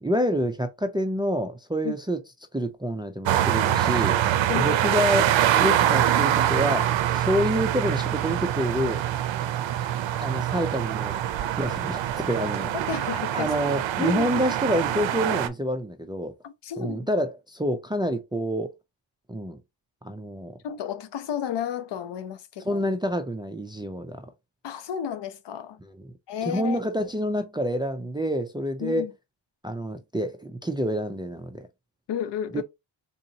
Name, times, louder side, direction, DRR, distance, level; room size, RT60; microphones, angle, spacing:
voice 1, 0.0-2.2 2.5-4.2 4.5-5.3 5.6-9.1 10.2-11.2 11.6-12.7 13.3-16.3 16.8-18.7 19.3-19.6 20.0-20.6 22.7-24.3 25.9-26.1 26.4-29.1 29.6-31.7 32.5-32.6, equal, 10° right, 0.3 m, -27 dB
sound 1, 3.3-15.5, right 11 dB, 75° right, 0.6 m, -24 dB
voice 2, 4.5-4.9 12.7-13.5 14.0-14.3 16.4-17.1 20.6-22.8 24.6-25.8 26.3-26.8 28.8-29.1 32.1-32.6, left 8 dB, 65° left, 0.6 m, -32 dB
3.8 x 2.7 x 2.7 m
cardioid pair, 110°, 46 cm